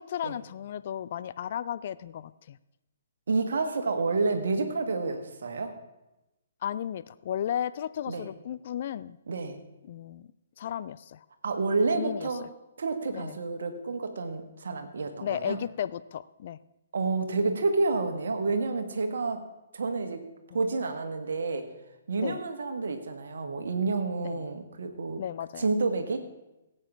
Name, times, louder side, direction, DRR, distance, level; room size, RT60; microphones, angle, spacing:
voice 1, 0.0-2.6 6.6-9.2 9.8-10.3 10.6-11.2 11.9-12.3 13.1-13.4 15.2-16.6 20.5-20.6 22.2-22.4 24.2-24.5 25.2-25.7, left 10 dB, 45° left, 16 dB, 0.4 m, -34 dB
voice 2, 3.3-5.7 8.1-8.3 9.3-9.6 11.4-12.4 12.8-15.6 16.9-19.4 19.7-20.3 20.5-21.6 22.1-25.2 25.6-26.2, right 3 dB, 60° right, 6 dB, 1.6 m, -29 dB
18.5 x 8.8 x 3.6 m, 0.97 s
figure-of-eight pair, 125°, 0 cm